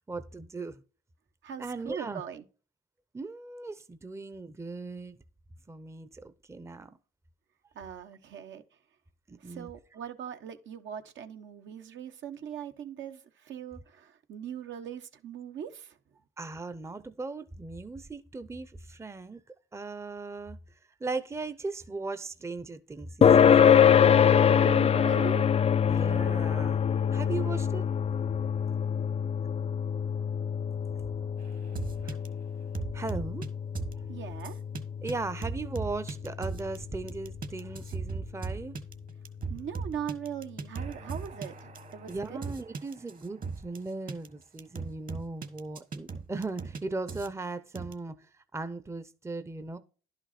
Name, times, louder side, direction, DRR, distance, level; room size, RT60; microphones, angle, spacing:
voice 1, 0.1-0.8 1.6-2.2 3.1-5.2 5.7-6.9 9.3-9.7 16.4-19.4 19.7-23.9 25.9-26.8 27.1-27.8 32.0-32.2 32.9-33.4 35.0-38.7 42.1-49.8, right 3 dB, 15° right, 0.7 m, -38 dB
voice 2, 1.4-2.4 7.7-8.6 9.4-16.0 24.6-25.5 34.1-34.6 39.5-42.5, right 8 dB, 70° right, 1.1 m, -40 dB
sound 1, 23.2-38.1, left 8 dB, 30° left, 0.4 m, -25 dB
sound 2, 31.7-32.3 32.7-33.5 33.7-34.0 34.4-34.8 35.1-35.2 35.4-36.8 37.1-43.8 44.1-44.3 44.6-46.8 47.1-47.3 47.7-47.9, right 4 dB, 45° right, 1.3 m, -37 dB
11.0 x 5.8 x 4.2 m
cardioid pair, 90°, 20 cm